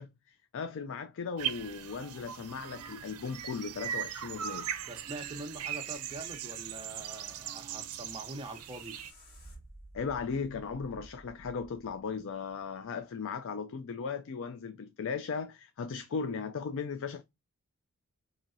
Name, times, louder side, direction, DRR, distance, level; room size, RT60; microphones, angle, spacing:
voice 1, 0.0-4.7 9.9-17.2, left 5 dB, 60° left, 0.4 m, -37 dB
sound 1, 1.4-9.1, right 10 dB, 75° right, 0.5 m, -39 dB
voice 2, 4.9-9.0, right 2 dB, 25° right, 0.8 m, -44 dB
sound 2, 7.8-12.9, right 1 dB, 45° left, 1.7 m, -54 dB
4.5 x 2.8 x 2.5 m
head